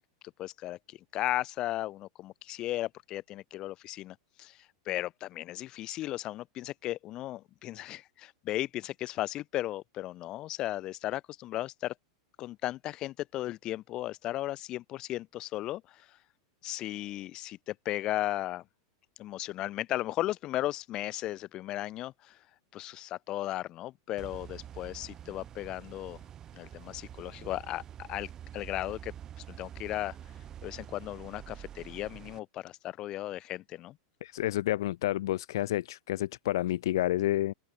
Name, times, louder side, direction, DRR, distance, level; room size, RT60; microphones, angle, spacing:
voice 1, 0.4-4.6 4.9-11.9 12.4-16.1 16.6-18.6 19.2-22.4 22.7-26.2 26.5-29.1 29.5-30.2 30.6-34.0, left 15 dB, 35° left, 1.9 m, -36 dB
sound 1, 24.2-32.4, right 10 dB, 25° right, 2.6 m, -47 dB
voice 2, 34.2-37.5, left 14 dB, 75° left, 0.5 m, -29 dB
open air
supercardioid pair, 155°, 2 cm